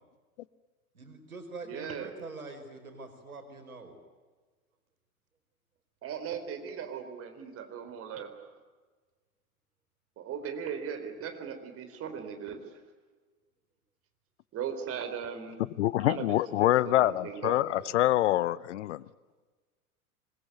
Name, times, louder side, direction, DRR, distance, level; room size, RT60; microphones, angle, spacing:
voice 1, 0.9-4.0 17.6-17.9, right 3 dB, 75° right, 6 dB, 5.1 m, -44 dB
voice 2, 1.6-2.1 6.0-8.3 10.2-12.6 14.5-15.6 16.0-16.3 16.6-17.5, right 7 dB, 30° right, 7 dB, 4.2 m, -38 dB
voice 3, 15.8-19.0, left 14 dB, 55° left, 21 dB, 0.8 m, -25 dB
26.0 x 22.0 x 9.3 m, 1.4 s
figure-of-eight pair, 90°, 43 cm